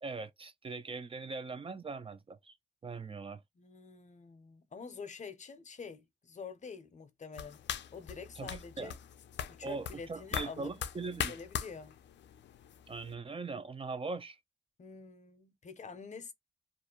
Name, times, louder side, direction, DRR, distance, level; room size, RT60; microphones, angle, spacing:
voice 1, 0.0-2.6 2.8-3.4 8.4-8.9 9.6-11.3 12.9-14.4, right 4 dB, 30° right, 0.4 m, -41 dB
voice 2, 3.6-7.6 7.9-8.9 9.5-10.7 11.3-11.9 14.8-16.3, left 5 dB, 40° left, 0.6 m, -47 dB
sound 1, 7.3-13.1, left 9 dB, 80° left, 0.4 m, -41 dB
2.5 x 2.1 x 2.9 m
cardioid pair, 70°, 18 cm